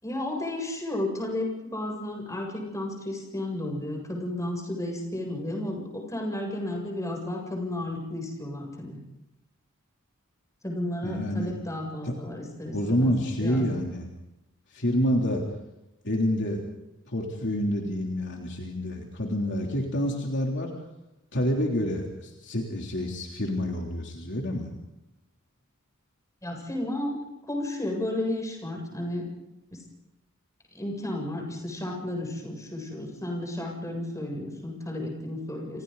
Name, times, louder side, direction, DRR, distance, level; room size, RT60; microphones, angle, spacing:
voice 1, 0.0-9.0 10.6-13.1 13.4-13.7 26.4-27.2 27.5-29.3 29.7-29.8 30.7-35.8, left 1 dB, 15° left, 0 dB, 7.8 m, -33 dB
voice 2, 11.0-11.5 12.0-12.2 12.7-14.1 14.7-15.4 16.0-16.6 17.1-20.7 21.3-24.7, equal, 55° left, 0 dB, 3.4 m, -28 dB
30.0 x 27.5 x 4.1 m, 0.91 s
head